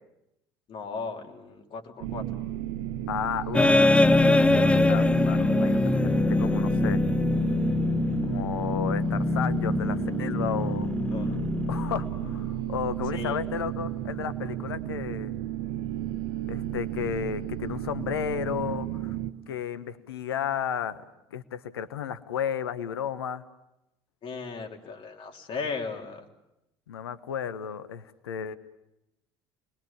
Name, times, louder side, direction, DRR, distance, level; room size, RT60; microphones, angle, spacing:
voice 1, 0.7-2.2 11.1-11.4 13.1-13.4 24.2-26.2, left 4 dB, 40° left, 3 dB, 3.4 m, -36 dB
sound 1, 2.0-19.3, right 13 dB, 60° right, 1.1 m, -33 dB
voice 2, 3.1-4.0 4.5-7.0 8.2-10.9 11.7-15.3 16.5-19.2 19.5-21.0 21.3-23.4 26.9-28.5, left 8 dB, 70° left, 13 dB, 1.2 m, -33 dB
sound 2, 3.5-12.5, left 2 dB, 10° left, 0.8 m, -23 dB
29.5 x 21.5 x 7.3 m, 0.87 s
figure-of-eight pair, 60°, 13 cm